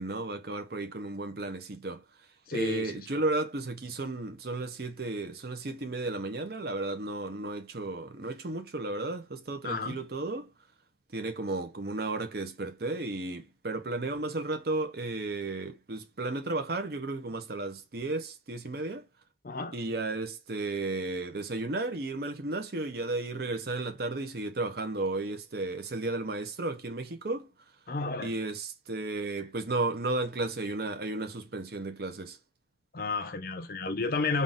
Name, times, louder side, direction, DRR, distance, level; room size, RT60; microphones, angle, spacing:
voice 1, 0.0-2.0 2.5-10.5 11.1-19.1 19.7-27.5 28.2-32.4, right 2 dB, 55° right, 0.7 m, -33 dB
voice 2, 2.5-3.1 9.6-10.0 19.4-19.8 27.9-28.3 32.9-34.4, left 3 dB, 50° left, 0.6 m, -32 dB
3.8 x 2.4 x 3.8 m
head